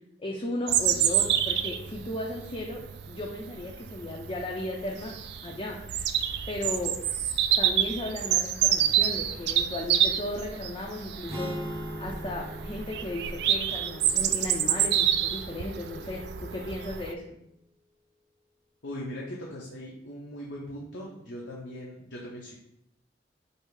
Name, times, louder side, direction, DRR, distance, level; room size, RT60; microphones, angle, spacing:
voice 1, 0.2-5.2 5.4-6.0 6.5-7.0 7.6-11.7 12.0-16.2 16.5-17.4, left 1 dB, 30° left, -2 dB, 0.5 m, -35 dB
Bird vocalization bird call bird song, 0.7-17.1, right 10 dB, 65° right, 0.3 m, -28 dB
sound 1, 11.3-15.4, equal, 15° right, 0.8 m, -40 dB
voice 2, 18.8-22.6, equal, 85° left, -3 dB, 0.8 m, -40 dB
5.4 x 2.0 x 4.7 m, 0.78 s
head